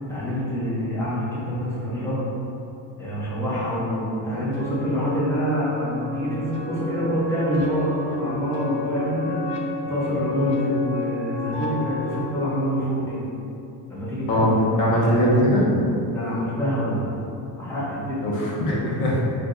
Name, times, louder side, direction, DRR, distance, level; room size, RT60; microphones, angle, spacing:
voice 1, 0.1-2.2 3.0-9.6 9.9-13.2 13.9-15.2 16.1-18.3, equal, 5° left, -10 dB, 0.9 m, -26 dB
sound 1, 4.5-12.5, left 3 dB, 75° left, 0.6 m, -32 dB
voice 2, 14.3-15.6 18.2-19.2, equal, 55° left, -5 dB, 0.9 m, -20 dB
4.5 x 2.5 x 2.6 m, 2.8 s
cardioid pair, 155°, 44 cm